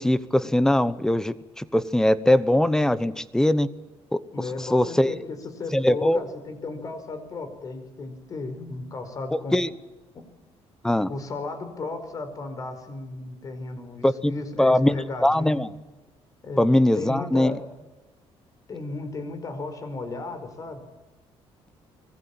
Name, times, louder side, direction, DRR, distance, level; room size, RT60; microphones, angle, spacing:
voice 1, 0.0-3.7 4.1-4.2 4.6-5.1 5.7-6.2 9.5-9.7 10.8-11.1 14.0-14.3 14.6-14.9 15.2-15.7 16.6-17.5, left 1 dB, 5° left, 15 dB, 0.9 m, -21 dB
voice 2, 4.3-9.6 11.1-15.6 16.4-16.6 16.9-17.6 18.7-20.8, left 3 dB, 35° left, 9 dB, 4.9 m, -34 dB
25.0 x 20.0 x 9.0 m, 1.1 s
cardioid pair, 165°, 11 cm